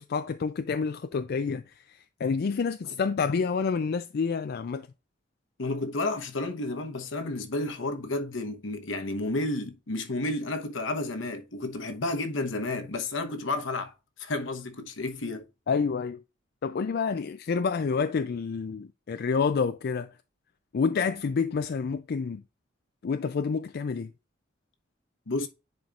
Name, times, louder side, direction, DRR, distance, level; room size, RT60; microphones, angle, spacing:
voice 1, 0.0-4.9 15.7-16.2 16.6-20.1 20.7-22.4 23.0-24.1, left 5 dB, 55° left, 0.4 m, -28 dB
voice 2, 5.6-13.9 14.2-15.4 25.3-25.5, left 2 dB, 75° left, 1.0 m, -31 dB
10.5 x 4.4 x 2.5 m
head